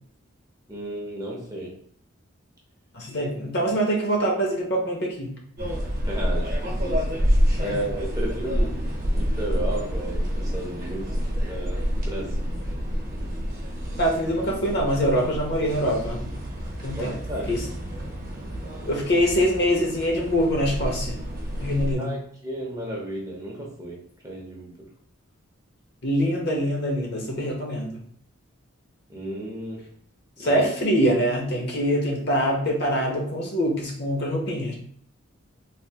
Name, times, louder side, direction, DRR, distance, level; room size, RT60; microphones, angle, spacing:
voice 1, 0.7-1.8 6.0-7.2 7.6-12.5 17.0-17.5 22.0-24.9 29.1-29.9 30.4-30.7, right 1 dB, 15° right, -3 dB, 0.6 m, -34 dB
voice 2, 2.9-5.4 7.6-7.8 14.0-16.3 16.8-17.1 17.5-17.6 18.8-21.2 21.6-22.2 26.0-28.0 30.4-34.7, equal, 50° left, -1 dB, 0.8 m, -24 dB
sound 1, 5.6-21.9, equal, 45° right, 0.8 m, -28 dB
3.4 x 2.6 x 2.8 m, 0.63 s
head